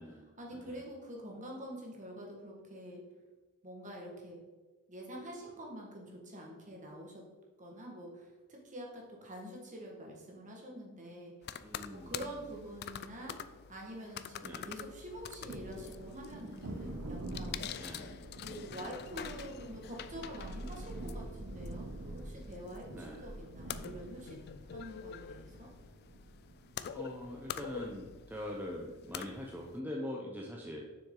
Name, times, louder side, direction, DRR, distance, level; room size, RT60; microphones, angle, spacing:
voice 1, 0.4-3.0 3.6-4.4 4.9-7.2 7.6-11.3 11.9-13.4 13.7-17.7 18.4-24.4 24.7-25.7, equal, 35° right, 0 dB, 1.6 m, -46 dB
sound 1, 11.4-29.8, left 9 dB, 45° left, 0.3 m, -47 dB
voice 2, 11.6-12.3 14.4-14.7 17.8-18.2 18.8-19.0 22.9-23.2 26.9-30.8, left 1 dB, 10° right, -1 dB, 0.6 m, -43 dB
Thunder, 15.0-28.2, right 1 dB, 90° right, 0.8 m, -46 dB
7.2 x 6.1 x 3.8 m, 1.3 s
head